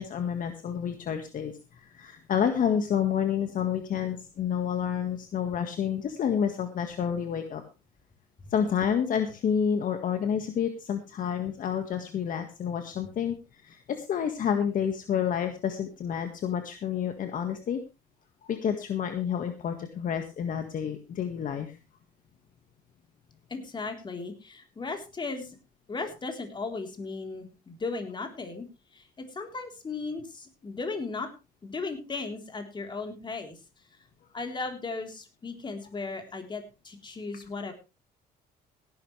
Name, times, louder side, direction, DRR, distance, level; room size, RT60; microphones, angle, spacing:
voice 1, 0.0-7.6 8.5-17.8 18.4-21.8, left 8 dB, 55° left, 6 dB, 1.8 m, -29 dB
voice 2, 23.5-25.6 25.9-28.7 28.9-31.3 31.6-33.6 34.3-37.7, left 3 dB, 25° left, 4 dB, 3.8 m, -36 dB
17.0 x 11.5 x 3.3 m, 0.28 s
cardioid pair, 110°, 17 cm